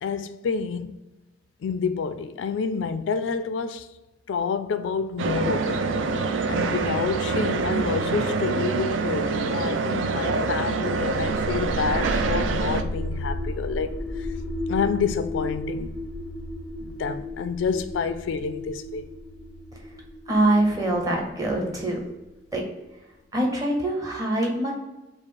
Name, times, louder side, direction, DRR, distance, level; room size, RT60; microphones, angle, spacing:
voice 1, 0.0-1.0 1.6-3.9 4.3-6.0 6.5-14.3 14.7-15.9 16.8-19.1, left 5 dB, 80° left, 0.3 m, -28 dB
sound 1, 5.2-12.8, right 4 dB, 85° right, 0.4 m, -25 dB
sound 2, 11.0-22.8, left 1 dB, 70° right, 1.3 m, -34 dB
voice 2, 20.3-22.0 22.5-22.6 23.3-24.7, right 1 dB, 20° right, 0.9 m, -24 dB
4.8 x 2.0 x 4.6 m
head